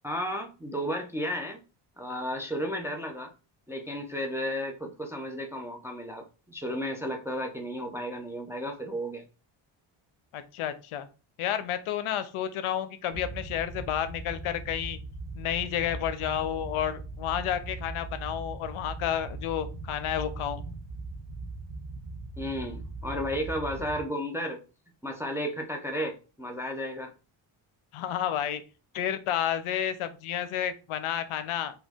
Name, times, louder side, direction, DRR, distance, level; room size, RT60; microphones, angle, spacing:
voice 1, 0.0-1.6 2.0-3.3 3.7-9.3 22.4-24.6 25.0-27.1, equal, 5° right, 2 dB, 0.3 m, -33 dB
voice 2, 10.3-11.1 11.4-15.0 15.4-20.6 27.9-28.6 28.9-31.7, left 10 dB, 80° left, 11 dB, 0.6 m, -31 dB
sound 1, 13.1-24.0, right 3 dB, 85° right, 0.9 m, -39 dB
3.0 x 2.3 x 3.4 m, 0.33 s
cardioid pair, 120°, 50 cm